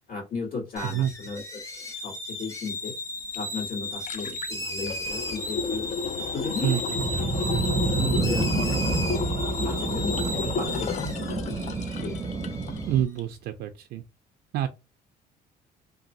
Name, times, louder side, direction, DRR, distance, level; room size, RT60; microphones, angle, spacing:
voice 1, 0.1-1.6 1.9-3.0 3.3-5.9 6.3-6.8 7.1-7.3 7.8-9.3 9.6-11.5 12.0-12.2, left 4 dB, 65° left, 1.8 m, -35 dB
sound 1, 0.8-13.0, left 1 dB, 20° left, 0.9 m, -35 dB
voice 2, 0.8-1.1 6.6-7.0 12.9-14.0 14.5-14.7, right 11 dB, 75° right, 0.4 m, -27 dB
sound 2, 3.3-3.4 3.7-12.8 13.2-13.3, left 5 dB, 45° left, 0.4 m, -33 dB
sound 3, 6.9-13.0, right 3 dB, 20° right, 0.5 m, -29 dB
2.9 x 2.3 x 2.6 m
cardioid pair, 110°, 17 cm